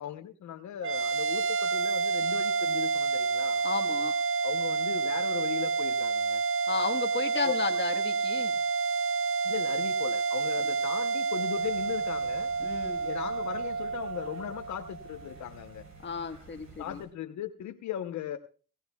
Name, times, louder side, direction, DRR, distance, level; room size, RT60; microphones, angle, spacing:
voice 1, 0.0-3.6 4.4-6.4 7.4-7.6 9.4-12.5 13.0-15.8 16.8-18.4, left 11 dB, 70° left, 6 dB, 0.9 m, -38 dB
sound 1, 0.8-15.4, right 4 dB, 45° right, 0.5 m, -29 dB
voice 2, 3.6-4.1 6.7-8.6 10.6-10.7 12.6-13.1 16.0-17.0, left 6 dB, 40° left, 5 dB, 1.4 m, -34 dB
sound 2, 11.6-17.1, right 3 dB, 65° right, 7.1 m, -52 dB
19.0 x 16.0 x 2.3 m, 0.37 s
cardioid pair, 90°, 30 cm